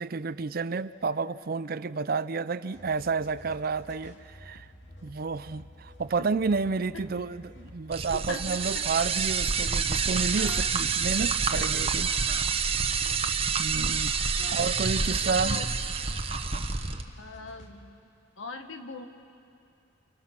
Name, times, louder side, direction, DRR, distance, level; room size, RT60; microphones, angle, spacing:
voice 1, 0.0-4.7 5.0-12.8 13.6-14.2 14.5-15.6, right 4 dB, 50° right, 15 dB, 0.5 m, -31 dB
sound 1, 2.7-17.8, left 1 dB, 65° left, 2.6 m, -50 dB
sound 2, 7.9-17.0, right 5 dB, 30° right, 1.0 m, -28 dB
voice 2, 8.1-8.8 10.4-10.7 11.5-11.7 14.4-14.6 14.9-15.7 17.2-18.0 18.4-19.1, left 3 dB, 85° left, 6 dB, 1.7 m, -41 dB
29.5 x 28.5 x 6.0 m, 2.6 s
head